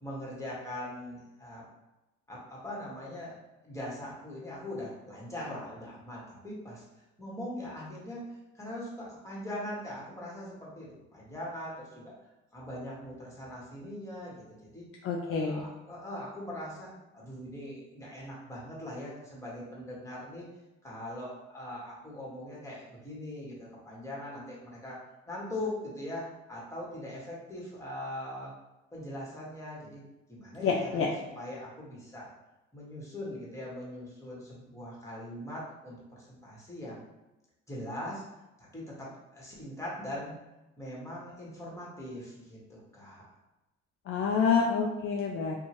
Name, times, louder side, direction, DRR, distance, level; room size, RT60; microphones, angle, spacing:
voice 1, 0.0-1.6 2.3-3.4 3.6-6.8 7.2-12.1 12.5-14.8 15.2-20.4 20.8-25.0 25.3-28.5 28.9-30.0 30.3-32.3 32.7-37.0 37.7-38.3 38.6-40.4 40.8-43.3, left 1 dB, 10° left, -5 dB, 1.3 m, -41 dB
voice 2, 15.0-15.7 30.6-31.1 44.1-45.6, left 5 dB, 45° left, 0 dB, 0.4 m, -27 dB
2.7 x 2.3 x 2.9 m, 1.0 s
supercardioid pair, 65°, 31 cm